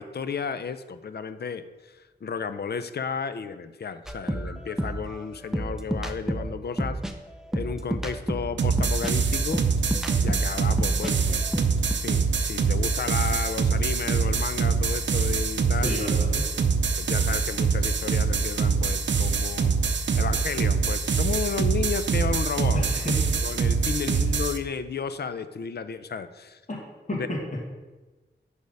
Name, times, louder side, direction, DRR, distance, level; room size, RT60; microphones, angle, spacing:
voice 1, 0.0-7.0 7.5-9.6 10.2-11.5 12.0-16.0 17.0-19.7 20.1-22.9 23.4-26.6 27.2-27.3, left 6 dB, 60° left, 12 dB, 0.5 m, -33 dB
sound 1, 4.1-11.1 11.4-11.9, right 1 dB, 5° right, 0.6 m, -30 dB
sound 2, 8.6-24.6, right 5 dB, 80° right, 0.6 m, -24 dB
voice 2, 15.7-16.5 22.7-23.2 24.1-24.2 26.7-26.8 27.1-27.6, left 1 dB, 40° left, -4 dB, 1.8 m, -31 dB
10.5 x 3.5 x 5.3 m, 1.2 s
wide cardioid pair, 100°, 19 cm